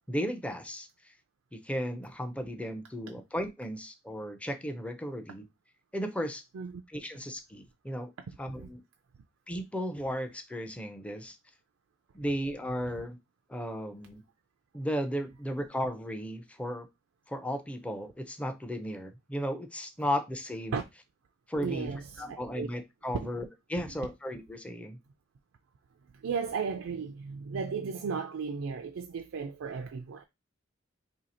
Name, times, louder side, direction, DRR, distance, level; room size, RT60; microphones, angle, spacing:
voice 1, 0.1-1.1 1.5-5.4 5.9-6.4 6.9-8.1 8.4-8.8 9.5-11.4 12.1-13.2 13.5-14.2 14.7-16.9 17.3-20.8 21.5-21.9 22.2-25.0, equal, 5° left, 0.4 m, -35 dB
voice 2, 21.6-22.7 23.1-23.3 23.8-23.9 26.1-30.2, right 5 dB, 85° right, 0.4 m, -35 dB
2.8 x 2.7 x 4.1 m
head